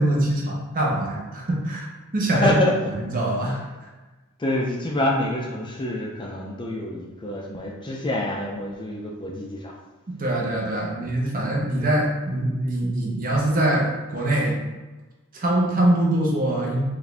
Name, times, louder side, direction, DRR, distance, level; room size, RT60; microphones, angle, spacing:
voice 1, 0.0-1.9 2.1-2.6 3.0-3.6 10.2-14.6 15.3-16.8, right 1 dB, 40° right, -2 dB, 0.9 m, -23 dB
voice 2, 2.3-2.9 4.4-9.7, left 1 dB, 20° left, -1 dB, 0.5 m, -26 dB
4.8 x 2.6 x 3.3 m, 1.2 s
head